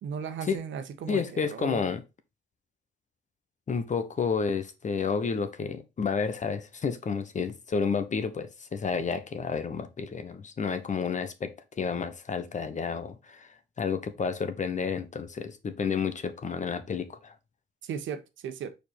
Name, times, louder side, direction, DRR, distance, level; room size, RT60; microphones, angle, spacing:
voice 1, 0.0-1.9 17.8-18.7, right 7 dB, 70° right, 1.1 m, -36 dB
voice 2, 1.1-2.0 3.7-17.3, left 5 dB, 40° left, 1.0 m, -31 dB
5.1 x 4.5 x 4.3 m
cardioid pair, 90°, 20 cm